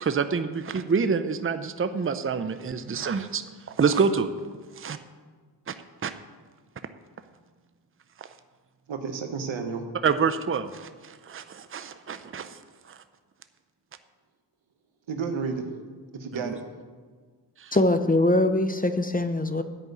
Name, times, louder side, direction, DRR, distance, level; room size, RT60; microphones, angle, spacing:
voice 1, 0.0-3.4 3.8-4.3 4.8-5.0 5.7-5.8 6.0-6.1 10.0-12.6 16.3-16.5 17.6-17.7, right 5 dB, 30° right, 10 dB, 0.6 m, -27 dB
voice 2, 8.9-9.9 15.1-15.7 16.1-16.6, right 5 dB, 80° right, 5 dB, 1.3 m, -31 dB
voice 3, 17.7-19.6, left 2 dB, 20° left, 9 dB, 0.7 m, -22 dB
11.0 x 5.3 x 8.1 m, 1.5 s
cardioid pair, 45°, 45 cm